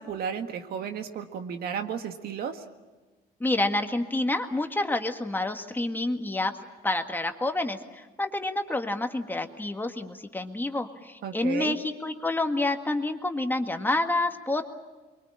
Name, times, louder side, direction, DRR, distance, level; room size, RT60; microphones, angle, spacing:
voice 1, 0.0-2.6 11.2-11.8, right 7 dB, 65° right, 6 dB, 1.9 m, -33 dB
voice 2, 3.4-6.5 6.8-14.6, left 2 dB, 10° left, 5 dB, 1.8 m, -28 dB
25.0 x 23.5 x 8.8 m, 1.2 s
cardioid pair, 110°, 17 cm